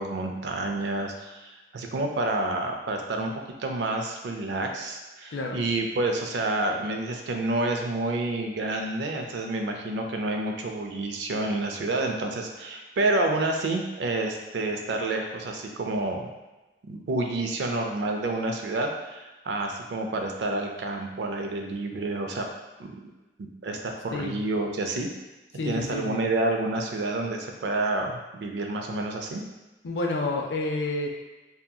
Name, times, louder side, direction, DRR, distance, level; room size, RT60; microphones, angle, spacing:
voice 1, 0.0-3.3 3.6-16.3 16.8-22.5 22.8-22.9 23.4-25.1 25.7-29.4, right 2 dB, 80° right, 3 dB, 0.4 m, -29 dB
voice 2, 5.3-5.6 24.1-24.4 25.6-26.2 29.8-31.1, left 2 dB, 80° left, 1 dB, 0.4 m, -29 dB
2.7 x 2.6 x 2.3 m, 1.1 s
head